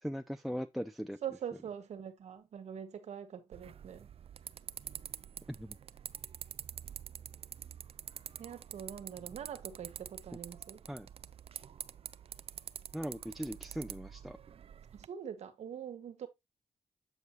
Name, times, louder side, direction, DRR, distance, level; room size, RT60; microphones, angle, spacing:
voice 1, 0.0-1.2 5.5-5.8 10.9-11.1 12.9-14.4, equal, ahead, 0.6 m, -39 dB
voice 2, 1.2-4.1 8.4-10.8 14.9-16.3, right 8 dB, 80° right, 1.2 m, -43 dB
sound 1, 3.5-15.1, right 8 dB, 60° right, 0.4 m, -47 dB
8.2 x 5.3 x 3.0 m
cardioid pair, 60°, 11 cm